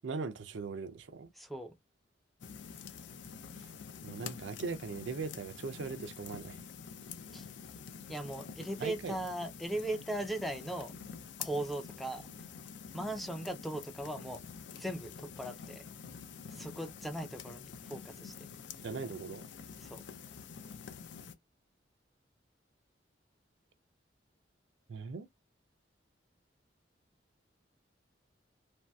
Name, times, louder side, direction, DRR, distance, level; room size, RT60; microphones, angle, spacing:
voice 1, 0.0-1.3 4.0-6.6 8.8-9.2 18.8-19.5 24.9-25.3, right 4 dB, 80° right, 0.4 m, -39 dB
voice 2, 1.4-1.7 7.3-7.4 8.1-10.9 11.4-12.2 12.9-14.4 14.8-15.8 16.5-18.3 19.8-20.0, right 1 dB, ahead, 0.4 m, -38 dB
sound 1, 2.4-21.4, left 6 dB, 75° left, 0.5 m, -47 dB
3.0 x 2.6 x 2.2 m
head